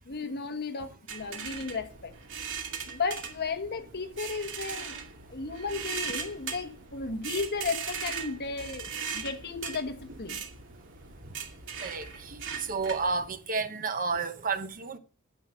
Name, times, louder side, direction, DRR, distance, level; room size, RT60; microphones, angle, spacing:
voice 1, 0.1-2.1 2.8-5.0 5.3-10.4, left 4 dB, 45° left, 1.4 m, -34 dB
sound 1, 1.1-13.3, right 6 dB, 55° right, 2.3 m, -39 dB
voice 2, 12.7-15.0, right 4 dB, 40° right, 1.0 m, -30 dB
9.8 x 8.2 x 7.1 m
head